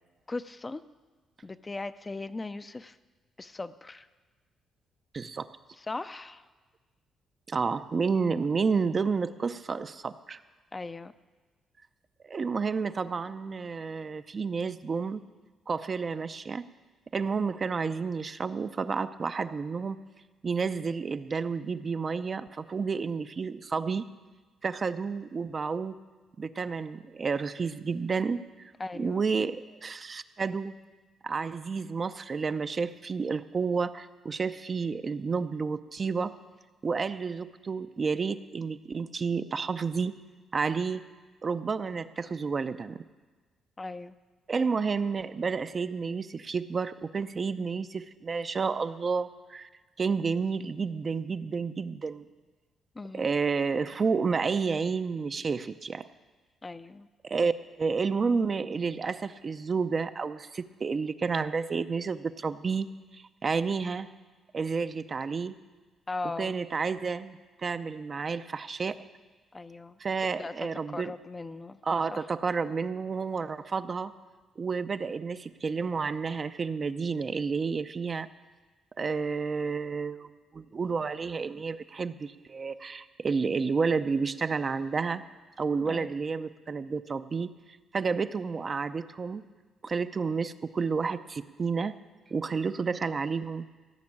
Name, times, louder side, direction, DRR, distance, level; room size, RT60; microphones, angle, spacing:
voice 1, 0.3-0.8 1.4-3.0 3.4-4.1 5.8-6.4 10.7-11.1 28.8-29.2 43.8-44.1 53.0-53.3 56.6-57.1 66.1-66.6 69.5-70.0 70.4-71.8 72.1-72.2 85.8-86.1, left 3 dB, 25° left, 12 dB, 0.5 m, -38 dB
voice 2, 5.1-5.5 7.5-10.4 12.2-15.2 15.7-16.7 17.1-20.0 20.4-24.0 24.6-26.0 26.4-28.4 28.9-30.7 31.2-36.4 36.8-40.1 40.5-41.0 41.4-43.0 44.5-49.7 50.0-52.3 53.1-56.1 57.2-57.5 57.8-62.9 63.1-64.1 64.5-65.6 66.4-69.1 70.0-71.1 71.8-74.1 74.6-78.3 79.0-85.2 85.6-87.6 87.9-89.4 89.8-91.9 92.3-93.7, right 5 dB, 40° right, 11 dB, 0.5 m, -30 dB
16.0 x 6.0 x 8.6 m, 1.3 s
cardioid pair, 90°, 0 cm